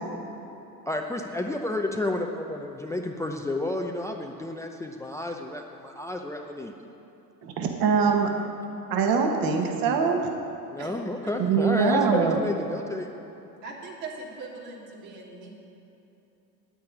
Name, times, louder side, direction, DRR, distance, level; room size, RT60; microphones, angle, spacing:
voice 1, 0.9-6.7 10.7-13.1, left 1 dB, 5° left, 3 dB, 0.7 m, -31 dB
voice 2, 7.4-8.3 8.9-10.3 11.4-12.4, right 5 dB, 45° right, 2 dB, 1.8 m, -23 dB
voice 3, 13.6-15.5, right 3 dB, 70° right, -2 dB, 3.1 m, -40 dB
9.5 x 9.1 x 9.0 m, 2.9 s
hypercardioid pair, 90°, 50 cm